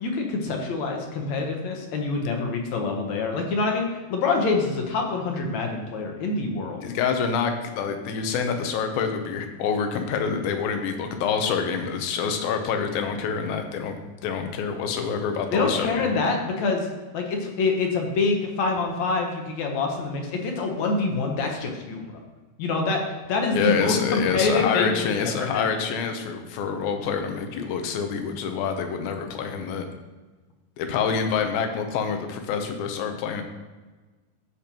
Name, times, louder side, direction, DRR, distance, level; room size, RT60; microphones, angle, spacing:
voice 1, 0.0-6.8 15.5-16.9 17.1-22.2 22.6-23.0 23.3-25.7, left 3 dB, 70° left, 2 dB, 1.9 m, -26 dB
voice 2, 6.8-14.0 14.2-16.1 23.5-29.9 30.8-33.4, left 6 dB, 85° left, 6 dB, 2.6 m, -27 dB
14.0 x 5.2 x 2.9 m, 1.3 s
omnidirectional pair, 4.1 m